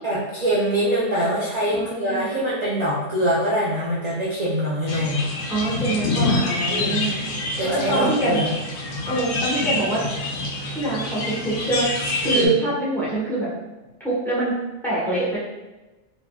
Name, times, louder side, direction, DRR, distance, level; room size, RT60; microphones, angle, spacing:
voice 1, 0.0-5.2 6.7-7.0 7.6-8.5 12.2-12.5, right 1 dB, 45° right, -7 dB, 0.6 m, -23 dB
voice 2, 1.7-2.3 5.5-7.2 7.6-8.4 9.1-10.0 10.7-11.9 12.2-13.5 14.0-14.5 14.8-15.4, right 2 dB, ahead, -9 dB, 1.0 m, -24 dB
sound 1, 4.9-12.5, left 2 dB, 70° left, 0.9 m, -26 dB
3.6 x 2.9 x 2.3 m, 1.1 s
omnidirectional pair, 1.4 m